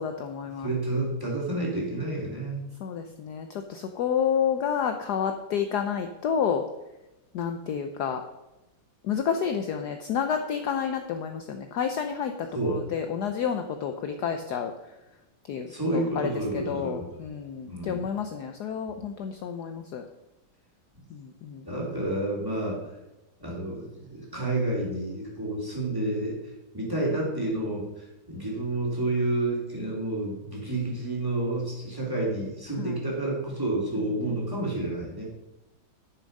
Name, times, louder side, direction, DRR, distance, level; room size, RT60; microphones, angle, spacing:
voice 1, 0.0-0.7 2.8-6.6 7.3-8.2 9.0-14.7 15.5-15.7 15.9-20.0 21.1-21.7 32.8-33.0 34.0-34.1, left 7 dB, 65° left, 6 dB, 1.1 m, -30 dB
voice 2, 0.6-2.6 12.5-12.9 15.7-17.0 17.7-18.0 21.6-22.8 23.4-26.4 26.7-35.3, right 2 dB, 10° right, -3 dB, 3.0 m, -29 dB
10.0 x 7.0 x 5.3 m, 0.98 s
omnidirectional pair, 2.2 m